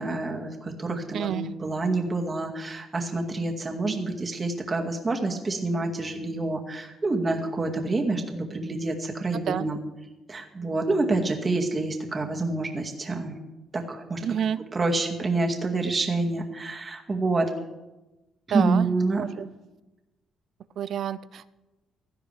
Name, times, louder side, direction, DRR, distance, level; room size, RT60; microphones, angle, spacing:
voice 1, 0.0-9.8 10.3-13.4 13.7-14.2 14.7-17.5 18.5-19.2, right 3 dB, 30° right, 1 dB, 2.0 m, -27 dB
voice 2, 1.1-1.5 9.5-9.7 14.2-14.6 18.5-18.9 19.2-19.5 20.8-21.5, right 9 dB, 65° right, 16 dB, 0.5 m, -29 dB
16.5 x 12.0 x 3.4 m, 1.1 s
cardioid pair, 90°, 0 cm